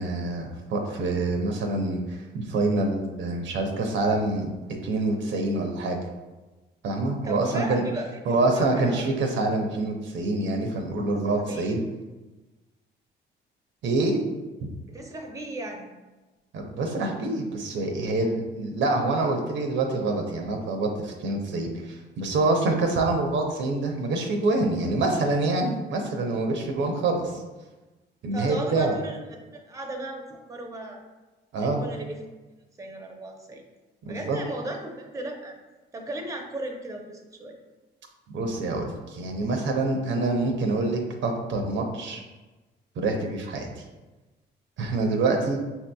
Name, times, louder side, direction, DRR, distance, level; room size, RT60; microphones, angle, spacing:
voice 1, 0.0-6.0 6.8-7.8 8.3-11.8 13.8-14.2 16.5-27.4 28.2-28.9 31.5-31.8 34.1-34.4 38.3-42.2 43.0-43.7 44.8-45.6, right 2 dB, 70° right, 3 dB, 0.6 m, -26 dB
voice 2, 7.2-9.0 11.3-11.7 14.9-15.9 28.3-31.0 31.6-32.2 32.8-33.6 34.1-35.6 35.9-37.6, right 1 dB, 15° right, 2 dB, 0.6 m, -36 dB
5.5 x 2.7 x 2.2 m, 1.2 s
cardioid pair, 90°, 20 cm